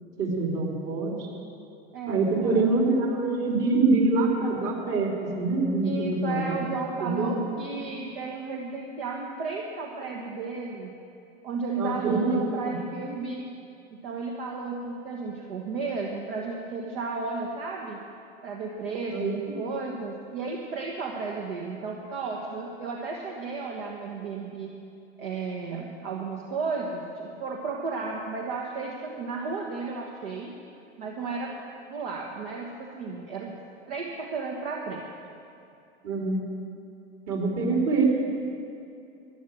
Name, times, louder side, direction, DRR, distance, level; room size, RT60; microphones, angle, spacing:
voice 1, 0.2-1.3 2.1-6.6 7.0-7.4 11.8-12.8 19.1-19.4 36.0-36.4 37.3-38.0, right 3 dB, 45° right, -1 dB, 3.4 m, -25 dB
voice 2, 1.9-3.2 5.8-10.9 11.4-13.5 13.9-18.0 18.4-24.8 25.2-30.5 31.0-31.6 31.9-33.5 33.9-35.0, right 4 dB, 60° right, 0 dB, 1.5 m, -33 dB
12.0 x 11.0 x 7.5 m, 2.6 s
figure-of-eight pair, 85°, 33 cm